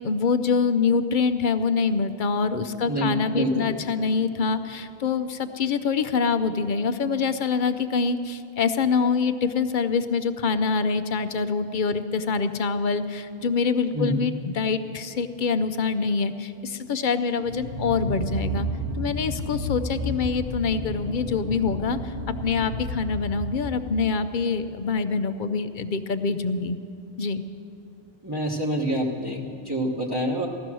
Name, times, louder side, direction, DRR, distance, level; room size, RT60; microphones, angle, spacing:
voice 1, 0.0-18.7 18.9-22.1 22.4-26.8 27.2-27.4, left 5 dB, 55° left, 10 dB, 0.7 m, -25 dB
voice 2, 2.8-3.7 13.9-14.2 28.2-30.5, equal, 25° right, -2 dB, 1.1 m, -27 dB
sound 1, 17.4-24.0, equal, 40° right, 1.4 m, -31 dB
15.5 x 13.0 x 6.1 m, 2.6 s
omnidirectional pair, 1.1 m